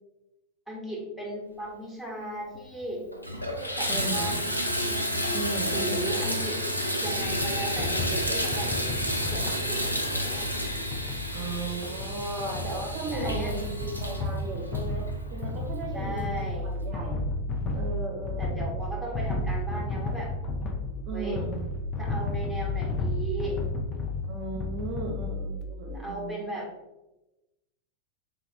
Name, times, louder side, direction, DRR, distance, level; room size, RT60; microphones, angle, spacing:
voice 1, 0.7-3.1 3.6-4.7 5.7-6.6 7.0-8.7 9.2-10.5 13.1-13.5 15.9-16.7 18.4-20.3 21.1-21.4 22.0-23.6 25.9-26.7, right 1 dB, 5° left, -3 dB, 1.0 m, -36 dB
Water tap faucet / Bathtub (filling or washing), 2.5-2.6 3.1-15.5 16.2-16.3 16.8-16.9, equal, 90° left, 0.4 m, -30 dB
voice 2, 3.9-4.4 5.3-6.1 11.3-17.2 17.7-18.8 21.0-21.6 24.3-26.4, right 2 dB, 40° right, -1 dB, 0.5 m, -36 dB
sound 1, 7.2-25.6, left 1 dB, 25° left, 0.5 m, -33 dB
sound 2, 20.3-25.9, left 2 dB, 60° left, 0.8 m, -40 dB
3.2 x 2.4 x 3.4 m, 1.0 s
figure-of-eight pair, 90°, 0 cm